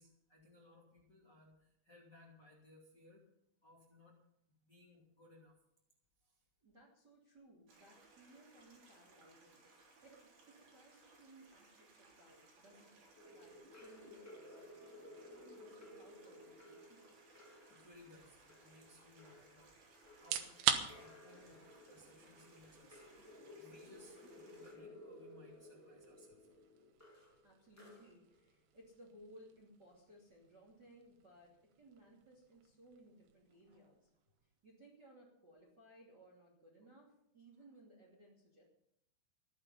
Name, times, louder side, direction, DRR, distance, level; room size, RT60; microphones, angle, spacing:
voice 1, 0.0-3.2 3.6-4.2 4.6-5.5 6.2-6.4 10.0-10.1 17.6-20.7 20.9-26.6 33.6-33.9, left 2 dB, 30° left, -3 dB, 2.4 m, -63 dB
voice 2, 6.6-13.0 13.3-17.3 27.4-34.1 34.6-38.6, right 1 dB, 30° right, -3 dB, 2.3 m, -62 dB
Stream, 7.7-24.8, right 3 dB, 50° right, 5.1 m, -65 dB
sound 1, 13.1-28.5, left 1 dB, 5° left, 1.3 m, -58 dB
sound 2, 20.1-35.0, right 9 dB, 70° right, 3.1 m, -45 dB
15.0 x 12.0 x 5.6 m, 0.76 s
omnidirectional pair, 5.7 m